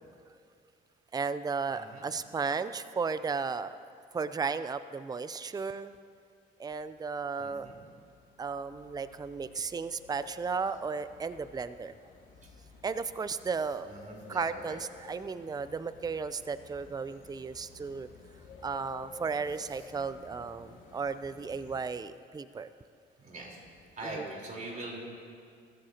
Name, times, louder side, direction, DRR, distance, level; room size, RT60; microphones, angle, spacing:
voice 1, 1.1-3.8 4.1-5.9 6.6-7.7 8.4-11.9 12.8-13.9 14.3-18.1 18.6-22.7 24.0-24.3, right 5 dB, 20° right, 13 dB, 0.5 m, -34 dB
voice 2, 1.7-2.0 7.4-7.8 13.9-14.8 23.2-23.6 24.0-25.0, right 2 dB, 40° right, -2 dB, 4.0 m, -42 dB
sound 1, 7.2-21.8, left 4 dB, 75° left, 2.6 m, -53 dB
22.0 x 13.0 x 2.9 m, 2.3 s
cardioid pair, 90°, 20 cm